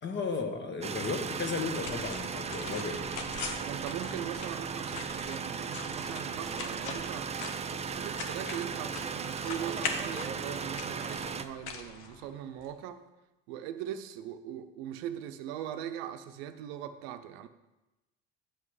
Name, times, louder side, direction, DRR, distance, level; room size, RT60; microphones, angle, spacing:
voice 1, 0.0-3.1, left 4 dB, 40° left, 5 dB, 1.4 m, -34 dB
sound 1, 0.8-11.4, right 6 dB, 20° right, 0.5 m, -36 dB
sound 2, 1.4-12.7, left 5 dB, 75° left, 1.0 m, -43 dB
voice 2, 3.6-7.3 7.7-13.0 13.5-17.5, right 10 dB, 90° right, 10 dB, 0.6 m, -40 dB
8.9 x 5.6 x 4.8 m, 1.0 s
supercardioid pair, 90°, 31 cm